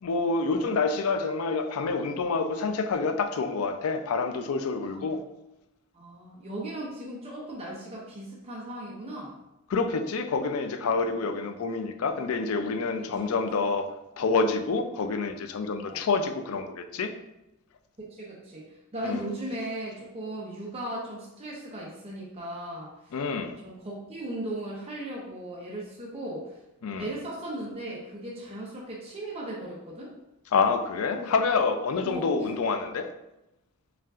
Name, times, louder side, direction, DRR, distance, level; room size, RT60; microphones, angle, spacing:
voice 1, 0.0-5.2 9.7-13.9 14.2-17.1 19.0-19.2 23.1-23.5 26.8-27.1 30.5-33.1, left 4 dB, 85° left, 7 dB, 0.4 m, -27 dB
voice 2, 4.8-5.1 5.9-9.3 11.2-11.3 13.0-13.1 15.8-16.0 18.0-18.6 18.9-22.9 23.6-26.6 27.0-30.1 31.2-31.3 32.0-32.5, right 1 dB, 30° right, -5 dB, 0.7 m, -37 dB
5.5 x 2.5 x 2.4 m, 0.91 s
head